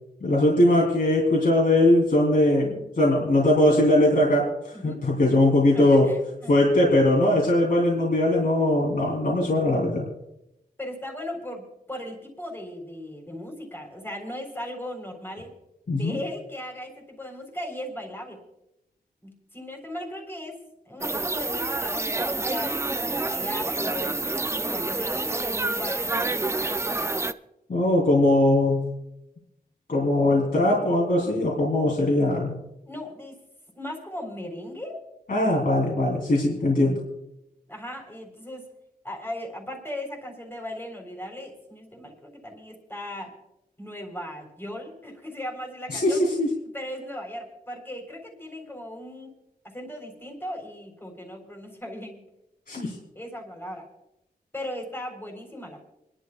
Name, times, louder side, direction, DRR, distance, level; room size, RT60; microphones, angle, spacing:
voice 1, 0.2-6.1 6.5-10.1 15.9-16.1 27.7-28.9 29.9-32.6 35.3-37.0 45.9-46.5 52.7-53.0, left 1 dB, 60° left, -4 dB, 3.3 m, -21 dB
voice 2, 4.7-5.1 5.7-6.5 10.8-15.5 15.9-18.4 19.2-22.7 23.0-24.3 24.7-26.2 32.8-33.4 33.8-35.0 37.7-38.6 39.0-43.3 43.8-46.3 46.7-49.3 49.6-52.3 53.2-53.9 54.5-55.8, left 1 dB, 15° left, 2 dB, 3.8 m, -37 dB
sound 1, 21.0-27.3, right 2 dB, 15° right, 0.4 m, -28 dB
29.0 x 11.5 x 2.4 m, 0.87 s
wide cardioid pair, 110°, 16 cm